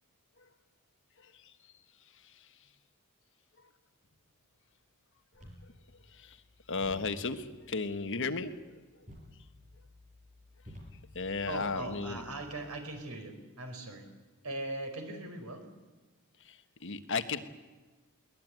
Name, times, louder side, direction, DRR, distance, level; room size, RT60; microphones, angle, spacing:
sound 1, 5.3-12.7, left 1 dB, 35° right, 6.1 m, -54 dB
voice 1, 6.7-8.5 11.1-12.2 16.5-16.6 16.8-17.4, left 4 dB, 60° left, 9 dB, 1.4 m, -34 dB
voice 2, 11.5-14.1 14.4-15.7, right 2 dB, 90° right, 5 dB, 4.8 m, -40 dB
22.0 x 19.5 x 9.4 m, 1.3 s
head